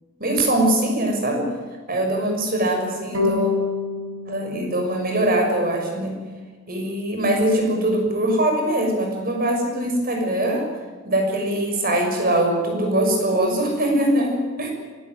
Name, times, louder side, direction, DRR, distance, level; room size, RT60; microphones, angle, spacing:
voice 1, 0.2-1.5 1.9-3.5 4.3-6.1 6.7-10.7 11.0-14.7, right 1 dB, 45° right, 2 dB, 6.4 m, -22 dB
sound 1, 3.1-6.4, left 4 dB, 75° right, 5.8 m, -29 dB
23.5 x 15.0 x 9.3 m, 1.5 s
head